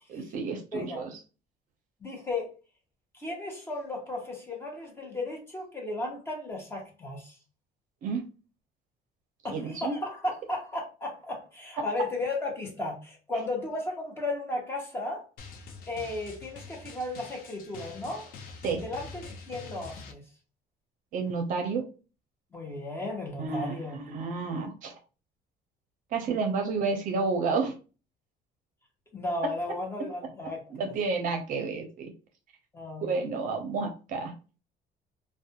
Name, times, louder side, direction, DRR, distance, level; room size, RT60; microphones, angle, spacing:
voice 1, 0.1-1.1 8.0-8.2 9.5-10.0 18.6-18.8 21.1-21.8 23.4-24.9 26.1-27.7 29.4-29.5 30.7-32.1 33.0-34.3, right 4 dB, 55° right, 4 dB, 0.5 m, -30 dB
voice 2, 0.7-1.1 2.0-2.5 3.1-7.4 9.4-15.2 15.9-18.3 18.8-20.2 22.5-24.0 29.1-30.6 32.7-33.1, left 2 dB, 15° left, 0 dB, 0.7 m, -35 dB
Drum, 15.4-20.1, left 4 dB, 60° left, 0.5 m, -45 dB
2.4 x 2.1 x 2.7 m, 0.34 s
cardioid pair, 165°, 17 cm